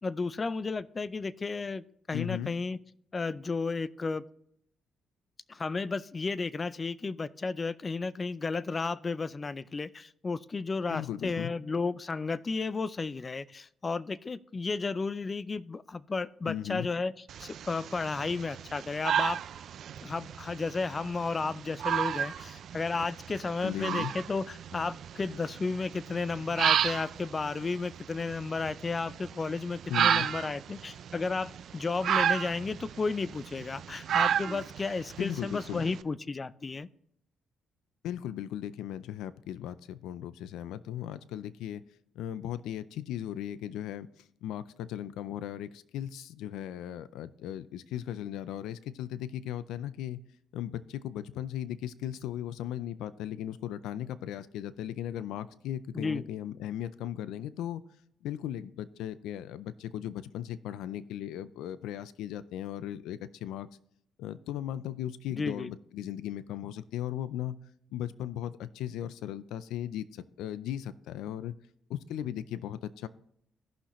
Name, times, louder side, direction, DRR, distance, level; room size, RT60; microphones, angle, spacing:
voice 1, 0.0-2.8 3.1-4.2 5.5-17.1 17.4-19.4 20.0-36.9 55.9-56.3 65.3-65.7, left 4 dB, 30° left, 17 dB, 0.4 m, -33 dB
voice 2, 2.1-2.5 10.9-11.5 16.4-16.9 23.6-24.1 29.9-30.3 35.2-35.9 38.0-41.8 42.1-50.2 50.5-57.8 58.2-63.7 64.2-67.6 67.9-71.6 71.9-73.1, left 11 dB, 90° left, 15 dB, 0.4 m, -37 dB
sound 1, 17.3-36.0, right 9 dB, 65° right, 0.4 m, -33 dB
16.5 x 5.8 x 3.0 m, 0.70 s
cardioid pair, 90°, 0 cm